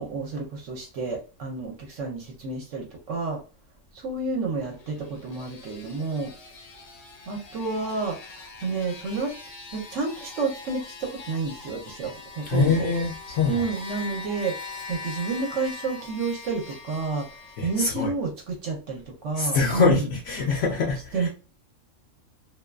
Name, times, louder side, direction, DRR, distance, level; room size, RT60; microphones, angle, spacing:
voice 1, 0.0-3.4 3.9-6.3 7.3-8.2 8.6-9.3 9.7-12.9 13.5-17.3 17.6-20.1 21.1-21.3, right 4 dB, 75° right, 1.0 m, -30 dB
sound 1, 4.6-17.8, left 3 dB, 85° left, 0.3 m, -42 dB
voice 2, 12.5-13.7 17.6-18.1 19.4-21.3, left 4 dB, 70° left, 0.9 m, -24 dB
2.5 x 2.2 x 2.2 m
omnidirectional pair, 1.3 m